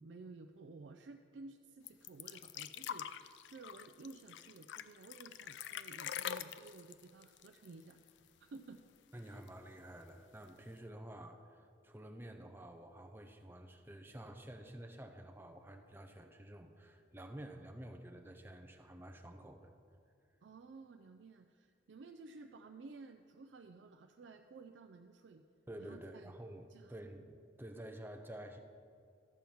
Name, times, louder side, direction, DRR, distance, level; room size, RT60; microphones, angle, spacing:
voice 1, 0.0-8.8 20.4-25.4 25.8-26.3 26.7-26.9, right 3 dB, 65° right, 6 dB, 0.4 m, -54 dB
sound 1, 1.9-8.3 8.5-8.6 9.0-9.7 10.5-10.6, left 9 dB, 70° left, 0.3 m, -45 dB
voice 2, 9.1-19.7 25.7-28.6, right 1 dB, 10° right, 4 dB, 0.6 m, -50 dB
13.0 x 4.5 x 7.0 m, 2.4 s
head